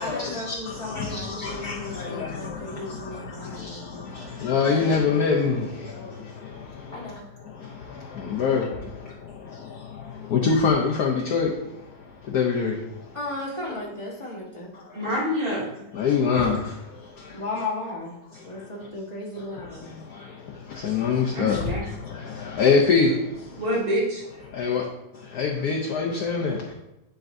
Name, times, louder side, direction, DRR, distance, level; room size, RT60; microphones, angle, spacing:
voice 1, 0.0-4.4 6.9-7.2 13.1-14.7 17.3-19.9, left 2 dB, 20° left, -4 dB, 1.3 m, -35 dB
voice 2, 1.0-2.3 4.4-5.6 8.3-8.6 10.3-11.5 12.3-12.7 16.0-16.6 20.8-21.6 22.6-23.1 24.6-24.8 25.4-26.5, left 5 dB, 65° left, -1 dB, 1.2 m, -22 dB
voice 3, 14.9-15.8 21.3-21.8 23.6-24.2, equal, 80° right, -6 dB, 2.8 m, -26 dB
10.0 x 4.5 x 2.6 m, 0.90 s
omnidirectional pair, 2.0 m